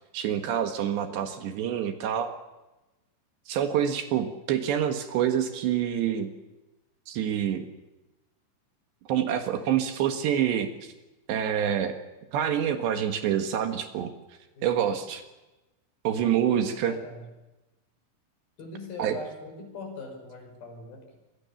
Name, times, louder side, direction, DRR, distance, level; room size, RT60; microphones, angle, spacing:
voice 1, 0.1-2.3 3.5-6.3 7.1-7.7 9.1-10.9 11.3-12.0 12.3-14.1 14.6-15.2 16.0-16.9 19.0-19.2, right 9 dB, 70° right, 7 dB, 3.5 m, -27 dB
voice 2, 3.7-4.1 14.6-15.0 16.5-17.3 18.6-21.2, left 3 dB, 50° left, 4 dB, 7.2 m, -42 dB
27.0 x 23.0 x 7.1 m, 1.0 s
omnidirectional pair, 5.4 m